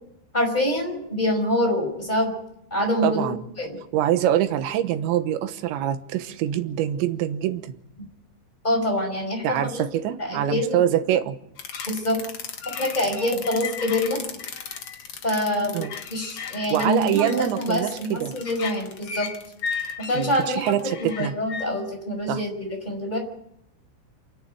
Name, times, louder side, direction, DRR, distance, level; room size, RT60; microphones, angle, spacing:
voice 1, 0.3-2.4 2.7-3.3 3.6-3.8 8.6-9.8 10.2-10.8 11.9-12.2 12.6-14.4 15.2-19.3 20.1-20.6 21.0-23.2, left 1 dB, 10° left, 3 dB, 5.1 m, -25 dB
voice 2, 3.0-3.4 3.9-7.7 9.4-11.4 15.7-15.9 16.7-18.3 20.1-21.3 22.3-22.4, right 11 dB, 85° right, 10 dB, 3.5 m, -24 dB
sound 1, 11.6-21.7, left 6 dB, 75° left, 1.3 m, -35 dB
27.5 x 11.0 x 9.2 m, 0.78 s
omnidirectional pair, 5.1 m